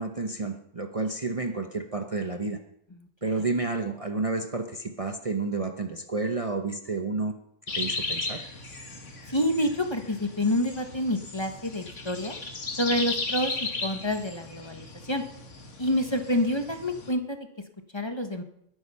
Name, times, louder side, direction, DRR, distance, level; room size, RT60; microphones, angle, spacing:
voice 1, 0.0-2.6 3.2-7.3 7.7-8.4, right 3 dB, 30° right, 5 dB, 0.9 m, -30 dB
sound 1, 7.7-17.1, left 3 dB, 80° left, 2.2 m, -36 dB
voice 2, 9.3-12.3 12.8-15.2 15.8-17.4 17.9-18.4, left 1 dB, 25° left, 6 dB, 1.3 m, -28 dB
20.5 x 9.7 x 5.6 m, 0.75 s
omnidirectional pair, 1.2 m